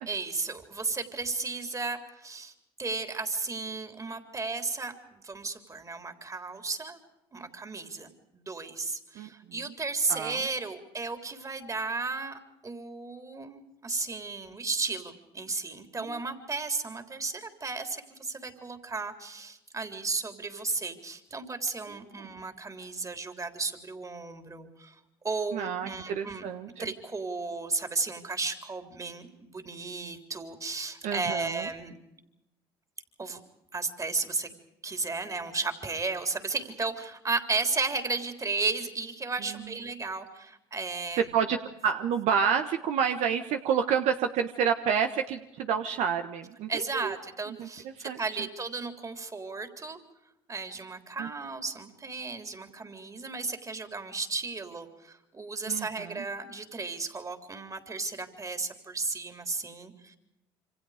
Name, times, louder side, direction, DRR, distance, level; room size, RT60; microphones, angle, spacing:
voice 1, 0.1-2.5 2.8-7.0 7.3-25.0 25.2-26.5 26.8-31.9 33.2-33.4 33.7-34.6 34.8-41.4 46.7-50.0 50.5-60.2, right 3 dB, 25° right, 7 dB, 3.7 m, -34 dB
voice 2, 25.5-26.8 31.0-31.7 39.5-39.7 41.3-41.6 41.8-47.1 47.6-48.2 51.2-51.3 55.7-56.2, right 7 dB, 70° right, 7 dB, 1.4 m, -29 dB
27.5 x 25.5 x 5.1 m, 0.89 s
hypercardioid pair, 70°, 12 cm